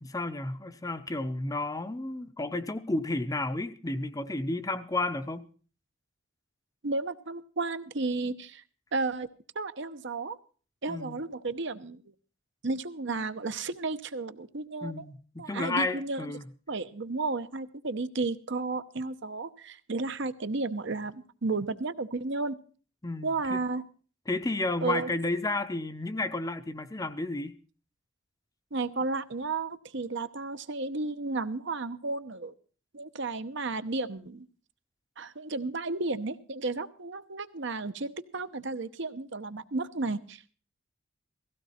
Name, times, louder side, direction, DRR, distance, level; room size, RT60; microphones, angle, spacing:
voice 1, 0.0-5.5 10.9-11.2 14.8-16.4 23.0-23.6 24.3-27.5, left 2 dB, 15° left, 0.7 m, -32 dB
voice 2, 6.8-8.6 8.9-9.3 9.5-10.4 10.8-12.0 12.6-15.0 15.4-16.3 16.7-22.6 23.2-23.8 24.8-25.1 28.7-32.5 32.9-34.4 35.2-40.4, right 3 dB, 60° right, 0.9 m, -33 dB
17.5 x 15.5 x 4.3 m
head